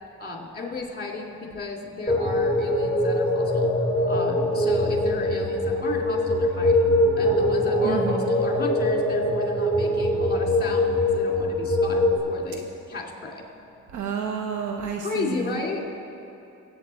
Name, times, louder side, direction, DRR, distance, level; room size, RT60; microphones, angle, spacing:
voice 1, 0.2-3.7 4.1-13.4 15.0-15.8, left 3 dB, 30° left, 0 dB, 2.5 m, -33 dB
sound 1, 2.1-12.2, left 1 dB, 10° left, 3.6 m, -23 dB
voice 2, 7.8-8.3 13.9-15.6, right 6 dB, 75° right, 2 dB, 1.1 m, -30 dB
21.5 x 8.5 x 4.3 m, 2.7 s
cardioid pair, 90°, 30 cm